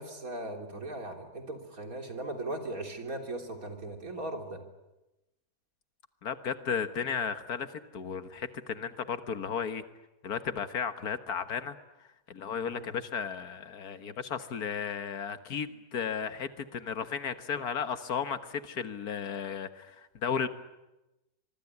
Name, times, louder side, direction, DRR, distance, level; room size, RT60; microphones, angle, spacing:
voice 1, 0.0-4.6 12.6-12.9, right 2 dB, 65° right, 4 dB, 3.9 m, -38 dB
voice 2, 6.2-9.8 10.2-11.8 12.3-20.5, left 6 dB, 90° left, 10 dB, 1.9 m, -34 dB
25.5 x 23.5 x 9.7 m, 1.0 s
omnidirectional pair, 1.6 m